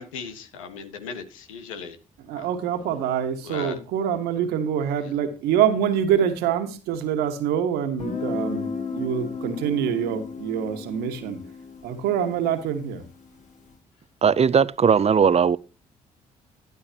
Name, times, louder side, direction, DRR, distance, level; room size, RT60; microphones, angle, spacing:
voice 1, 0.0-2.0 2.4-2.5 3.4-3.8, left 6 dB, 85° left, 1.6 m, -37 dB
voice 2, 2.3-11.4 11.8-13.0, right 9 dB, 75° right, 1.9 m, -25 dB
Guitar, 8.0-13.6, left 5 dB, 50° left, 4.4 m, -34 dB
voice 3, 14.2-15.6, right 7 dB, 40° right, 0.8 m, -18 dB
12.0 x 11.5 x 3.0 m
hypercardioid pair, 45°, 17 cm